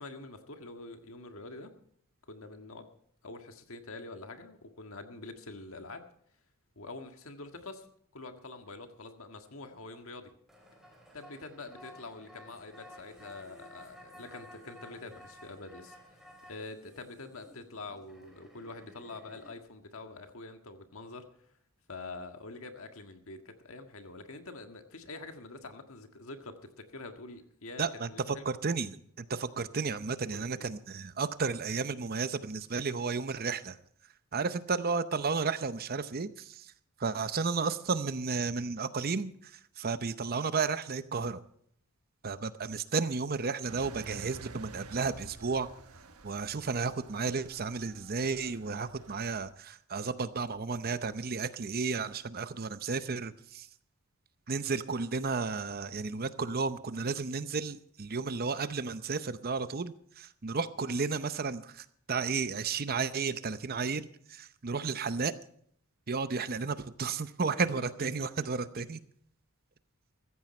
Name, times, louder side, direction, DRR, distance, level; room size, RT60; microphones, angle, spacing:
voice 1, 0.0-1.7 2.3-2.9 3.2-6.0 6.8-7.9 8.1-10.3 11.1-21.5 21.9-28.4 30.3-30.7 67.4-68.3, left 3 dB, 65° left, 6 dB, 1.7 m, -46 dB
sound 1, 10.5-19.5, equal, ahead, 3.7 m, -54 dB
voice 2, 27.8-33.8 34.3-36.7 37.0-39.3 39.8-41.4 42.2-45.7 46.2-53.7 54.5-65.3 66.1-69.0, right 4 dB, 45° right, 13 dB, 0.7 m, -33 dB
Engine, 43.7-49.5, right 3 dB, 85° right, 1.3 m, -50 dB
15.5 x 14.0 x 4.3 m, 0.65 s
head